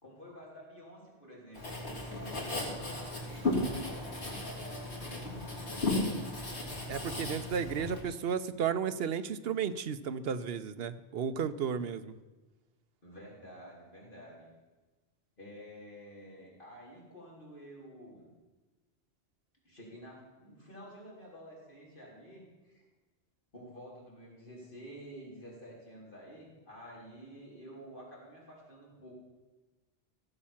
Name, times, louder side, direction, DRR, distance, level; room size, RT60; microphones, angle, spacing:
voice 1, 0.0-5.1 13.0-14.5 15.4-18.3 19.6-22.8 23.5-29.1, equal, 50° left, -4 dB, 4.3 m, -50 dB
Writing, 1.5-8.0, left 2 dB, 80° left, 3.4 m, -35 dB
voice 2, 6.9-12.1, right 7 dB, 65° right, 11 dB, 0.9 m, -33 dB
16.0 x 7.5 x 7.2 m, 1.2 s
omnidirectional pair, 1.1 m